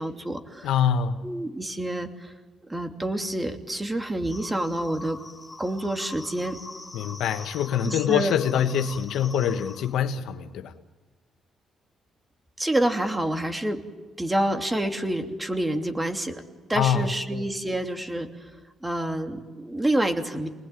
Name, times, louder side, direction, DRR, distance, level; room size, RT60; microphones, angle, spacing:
voice 1, 0.0-0.7 1.2-2.3 2.7-5.2 5.6-6.6 7.8-8.3 12.6-13.8 14.2-16.4 16.7-18.5 18.8-20.5, right 1 dB, 15° right, 5 dB, 3.0 m, -28 dB
voice 2, 0.6-1.2 6.9-10.7 16.7-17.1, left 8 dB, 80° left, 7 dB, 1.4 m, -24 dB
sound 1, 4.3-10.0, left 3 dB, 20° left, 1.6 m, -43 dB
28.5 x 20.5 x 9.2 m, 1.4 s
cardioid pair, 90°, 0 cm